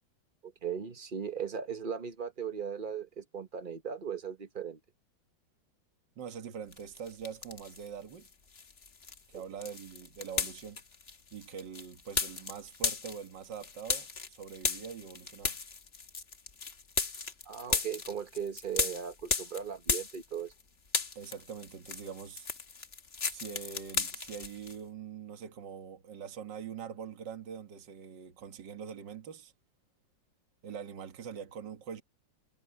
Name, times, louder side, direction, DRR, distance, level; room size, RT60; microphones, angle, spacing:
voice 1, 0.4-4.8 9.3-9.4 17.5-20.5, right 7 dB, 35° right, 1.0 m, -38 dB
voice 2, 6.2-8.3 9.3-10.8 11.3-15.6 21.2-22.5 23.3-29.5 30.6-32.0, right 7 dB, 65° right, 2.3 m, -43 dB
sound 1, 6.7-7.9 8.2-20.6 20.9-24.8, left 5 dB, 35° left, 1.4 m, -35 dB
omnidirectional pair, 2.1 m